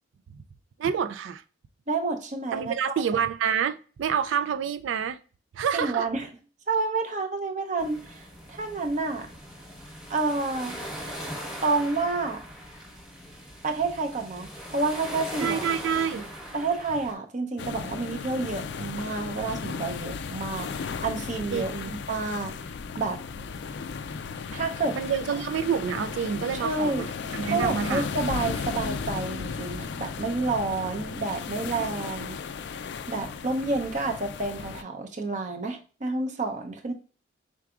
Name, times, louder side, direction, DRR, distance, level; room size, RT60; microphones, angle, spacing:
voice 1, 0.8-1.4 2.5-5.2 5.5-6.1 15.4-16.3 21.5-21.9 24.9-28.1, right 7 dB, 85° right, 0.3 m, -28 dB
voice 2, 1.9-3.2 5.7-6.3 6.7-9.3 10.1-10.7 11.6-12.4 13.6-15.7 16.5-22.7 23.0-23.2 24.5-25.0 26.5-27.1 27.4-32.4 33.1-36.9, right 3 dB, 40° right, 0.6 m, -29 dB
sound 1, 7.8-17.1, equal, 5° right, 0.9 m, -40 dB
sound 2, 17.6-34.8, left 5 dB, 65° left, 0.3 m, -35 dB
4.6 x 3.8 x 2.3 m
head